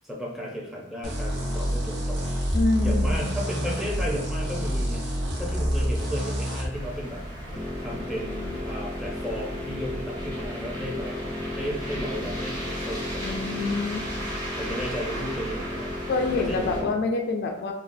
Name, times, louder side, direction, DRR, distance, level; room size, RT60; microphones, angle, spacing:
voice 1, 0.0-2.3 2.8-7.2 7.5-13.8 14.6-15.9 16.3-16.9, equal, ahead, -3 dB, 0.5 m, -34 dB
sound 1, 1.0-6.7, equal, 60° right, 0.9 m, -27 dB
voice 2, 2.5-3.3 13.2-14.0 16.1-17.7, left 3 dB, 50° left, 3 dB, 0.3 m, -26 dB
sound 2, 6.7-16.8, equal, 20° right, 0.9 m, -36 dB
sound 3, 7.5-16.9, left 2 dB, 85° right, 1.3 m, -35 dB
3.9 x 2.0 x 2.6 m, 0.81 s
head